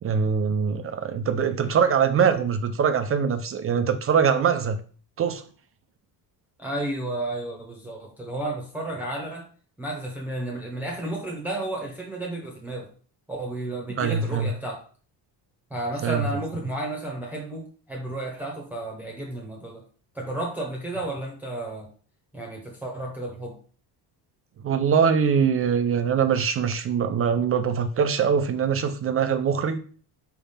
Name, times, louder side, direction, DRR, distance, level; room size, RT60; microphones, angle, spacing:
voice 1, 0.0-4.8 5.2-5.4 14.0-14.5 16.0-16.3 24.6-29.8, right 7 dB, 35° right, 9 dB, 0.4 m, -23 dB
voice 2, 6.6-9.4 9.8-12.9 13.3-14.8 15.7-19.8 20.1-21.9 22.3-23.6, right 1 dB, 5° right, -2 dB, 0.9 m, -32 dB
4.9 x 3.5 x 5.5 m, 0.42 s
cardioid pair, 175°, 42 cm